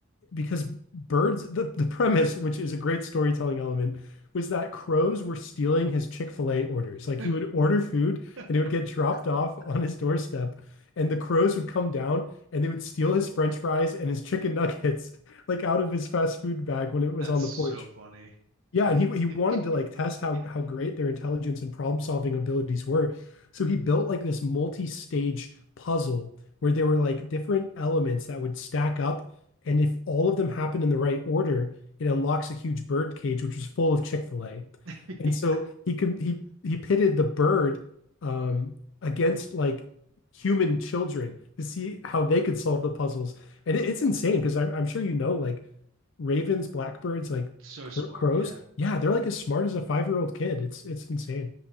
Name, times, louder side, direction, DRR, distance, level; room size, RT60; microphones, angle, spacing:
voice 1, 0.3-10.6 11.0-17.8 18.7-25.5 25.8-26.3 26.6-29.3 29.6-34.7 35.2-37.8 38.2-39.8 40.3-45.6 46.2-47.5 48.0-51.5, left 3 dB, 65° left, 8 dB, 0.4 m, -27 dB
voice 2, 17.2-18.4 18.9-19.0 19.5-19.6 34.8-35.2 47.6-48.6, right 3 dB, 85° right, 1 dB, 1.0 m, -43 dB
10.0 x 5.9 x 2.8 m, 0.69 s
head